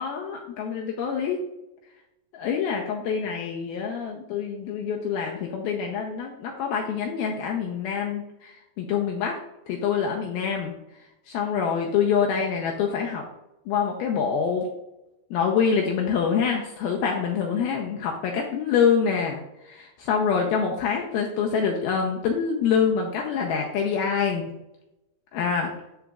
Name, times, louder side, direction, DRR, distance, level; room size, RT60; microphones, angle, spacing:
voice 1, 0.0-1.4 2.3-9.4 9.7-13.2 13.7-14.7 15.3-24.5 25.3-25.7, left 6 dB, 90° left, 0 dB, 2.2 m, -26 dB
12.5 x 4.7 x 2.4 m, 0.92 s
omnidirectional pair, 5.1 m